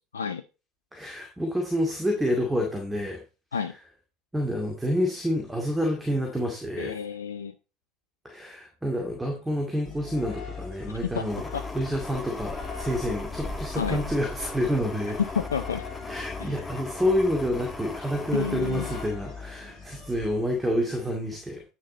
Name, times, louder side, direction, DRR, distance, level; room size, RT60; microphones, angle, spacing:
voice 1, 0.9-3.2 4.3-6.9 8.2-15.2 16.1-21.6, equal, 10° right, 2 dB, 2.2 m, -28 dB
voice 2, 6.8-7.5 11.1-11.2 11.5-11.6 13.8-14.0 15.2-15.8 16.4-16.5 18.3-19.0, left 7 dB, 80° left, 10 dB, 0.4 m, -30 dB
sound 1, 9.8-20.8, left 5 dB, 40° left, 4.9 m, -42 dB
sound 2, 11.3-19.1, left 2 dB, 15° left, 1.5 m, -37 dB
9.1 x 6.7 x 3.9 m, 0.31 s
figure-of-eight pair, 70°, 0 cm